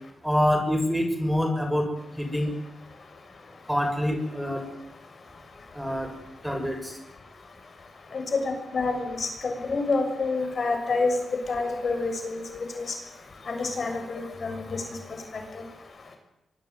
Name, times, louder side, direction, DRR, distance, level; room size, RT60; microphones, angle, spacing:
voice 1, 0.2-1.9 2.1-2.5 3.7-4.7 5.7-6.1 6.4-7.0, equal, 5° right, 5 dB, 6.3 m, -26 dB
voice 2, 8.7-11.1 11.5-12.6 13.5-14.8, left 3 dB, 50° left, 5 dB, 6.7 m, -28 dB
23.5 x 23.0 x 9.4 m, 0.88 s
cardioid pair, 95°, 0 cm